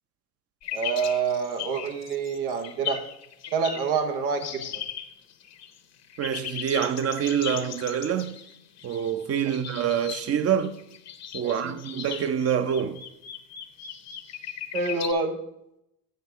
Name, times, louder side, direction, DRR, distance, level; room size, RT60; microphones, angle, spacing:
sound 1, 0.6-4.0 4.4-5.8 6.0-15.1, left 9 dB, 40° left, 0.8 m, -38 dB
voice 1, 0.7-3.0 3.5-4.8 9.5-9.6 11.4-11.8 14.7-15.4, right 5 dB, 90° right, 1.0 m, -27 dB
voice 2, 6.2-8.4 8.8-10.8 11.3-13.0, right 8 dB, 35° right, 0.6 m, -26 dB
8.2 x 5.7 x 4.5 m
supercardioid pair, 80°, 42 cm